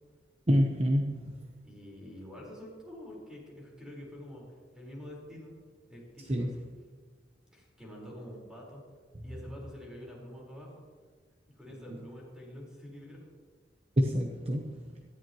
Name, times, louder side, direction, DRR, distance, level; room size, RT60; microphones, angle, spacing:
voice 1, 0.5-1.4 6.3-6.6 11.9-12.0 14.0-14.8, equal, 35° right, 2 dB, 1.0 m, -27 dB
voice 2, 1.6-5.5 5.9-6.7 7.5-8.8 9.2-10.8 11.5-13.3, equal, 5° right, -4 dB, 4.7 m, -47 dB
18.5 x 13.5 x 3.1 m, 1.5 s
head